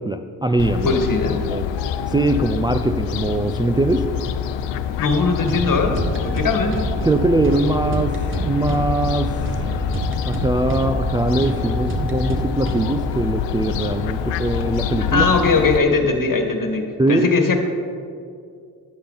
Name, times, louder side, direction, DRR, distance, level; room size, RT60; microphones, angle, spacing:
voice 1, 0.0-1.0 1.4-1.7 2.1-4.1 7.0-9.4 9.6-9.8 10.2-15.3 17.0-17.3, right 2 dB, 10° right, 5 dB, 0.4 m, -21 dB
Fowl, 0.6-15.8, left 8 dB, 80° left, 0.7 m, -26 dB
voice 2, 0.8-1.4 5.0-6.8 15.0-17.6, left 4 dB, 45° left, 4 dB, 1.7 m, -20 dB
sound 1, 5.4-13.1, right 3 dB, 30° right, 1.4 m, -28 dB
11.5 x 10.0 x 4.0 m, 2.3 s
cardioid pair, 65°, 44 cm